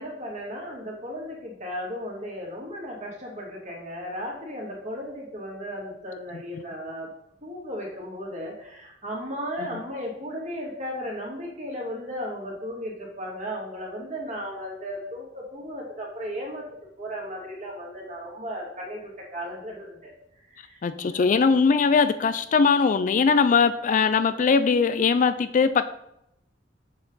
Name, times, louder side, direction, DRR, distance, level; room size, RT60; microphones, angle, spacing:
voice 1, 0.0-7.1 7.4-16.6 17.0-20.1 20.4-20.8 21.1-21.3, equal, 40° right, -2 dB, 2.4 m, -35 dB
voice 2, 20.8-26.0, left 5 dB, 45° left, 12 dB, 0.3 m, -21 dB
7.1 x 6.5 x 4.0 m, 0.80 s
head